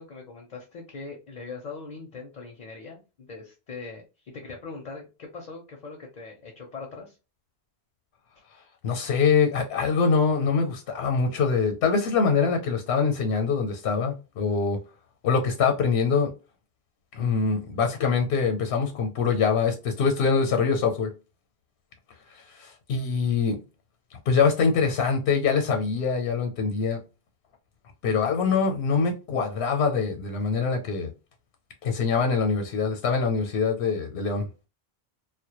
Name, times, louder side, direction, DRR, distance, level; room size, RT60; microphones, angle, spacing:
voice 1, 0.0-7.2, left 4 dB, 55° left, 0.5 m, -41 dB
voice 2, 8.8-14.8 15.2-16.3 17.1-21.1 22.5-23.6 24.3-27.0 28.0-31.1 31.8-34.5, left 5 dB, 90° left, 0.8 m, -24 dB
2.1 x 2.1 x 2.8 m
omnidirectional pair, 1.1 m